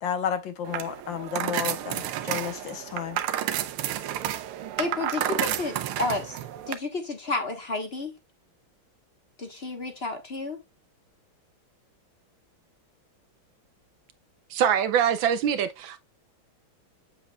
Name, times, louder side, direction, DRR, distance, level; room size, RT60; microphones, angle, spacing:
voice 1, 0.0-3.2, left 8 dB, 70° left, 1.6 m, -32 dB
sound 1, 0.6-6.8, right 11 dB, 85° right, 1.6 m, -31 dB
voice 2, 4.8-6.4 6.7-8.1 9.4-10.6, left 3 dB, 35° left, 1.2 m, -31 dB
voice 3, 14.5-16.0, right 8 dB, 70° right, 1.4 m, -24 dB
7.7 x 7.1 x 2.3 m
omnidirectional pair, 2.3 m